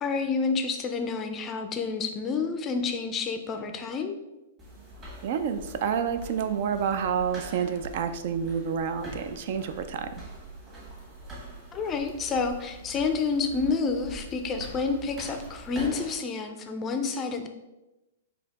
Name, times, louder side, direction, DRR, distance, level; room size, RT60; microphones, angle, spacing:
voice 1, 0.0-4.2 11.7-17.5, left 4 dB, 20° left, 6 dB, 0.4 m, -29 dB
sound 1, 4.6-16.1, right 1 dB, 20° right, 1.5 m, -44 dB
voice 2, 5.2-10.2, right 7 dB, 55° right, 9 dB, 0.3 m, -29 dB
4.1 x 2.8 x 4.0 m, 1.0 s
hypercardioid pair, 150°, 0 cm